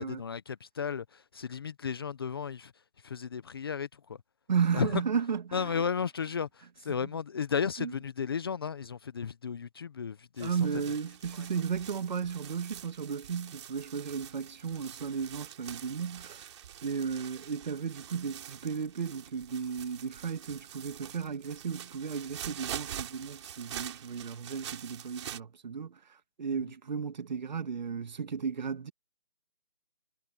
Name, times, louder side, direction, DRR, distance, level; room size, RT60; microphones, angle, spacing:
voice 1, 0.0-2.7 3.0-4.2 4.7-4.9 5.5-6.5 6.8-10.5, left 6 dB, 25° left, 0.8 m, -34 dB
voice 2, 4.5-5.8 6.9-7.1 7.8-7.9 10.4-16.5 16.8-26.0 26.4-28.9, right 6 dB, 50° right, 1.9 m, -34 dB
sound 1, 10.4-25.4, right 10 dB, 30° right, 3.2 m, -45 dB
hypercardioid pair, 165°, 29 cm